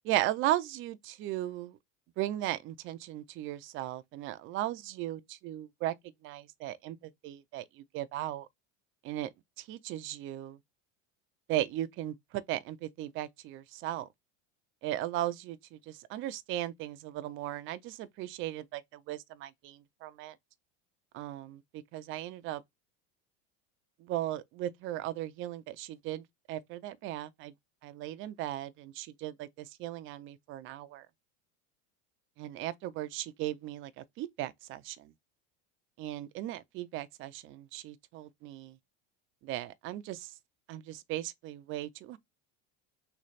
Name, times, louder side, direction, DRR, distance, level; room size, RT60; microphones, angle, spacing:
voice 1, 0.1-1.8 2.2-5.9 6.2-7.0 7.2-8.5 9.0-9.3 9.6-10.6 11.5-14.1 14.8-20.4 21.1-22.6 24.0-27.5 27.8-31.1 32.4-35.1 36.0-38.8 39.4-40.3 40.7-42.2, right 14 dB, 35° right, 0.4 m, -37 dB
3.2 x 2.3 x 4.0 m
supercardioid pair, 140°, 36 cm